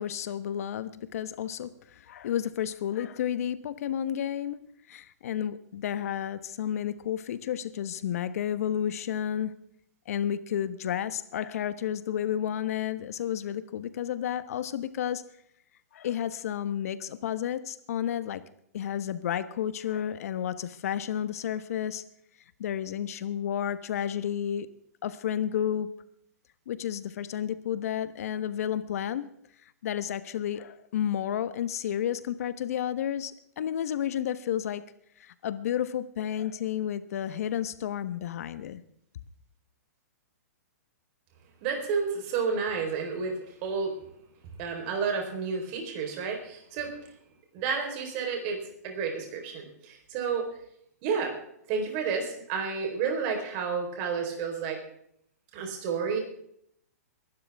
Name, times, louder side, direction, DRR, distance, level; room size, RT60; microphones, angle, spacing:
voice 1, 0.0-4.6 4.9-9.5 10.1-15.2 15.9-18.4 18.7-22.0 22.6-24.7 25.0-25.9 26.7-29.3 29.8-34.8 35.2-38.8, left 10 dB, 65° left, 13 dB, 1.1 m, -31 dB
voice 2, 41.6-43.9 44.6-46.9 47.5-50.6 51.0-51.4 51.7-54.8 55.5-56.2, right 5 dB, 40° right, 2 dB, 4.1 m, -31 dB
21.5 x 12.0 x 3.5 m, 0.71 s
hypercardioid pair, 130°, 9 cm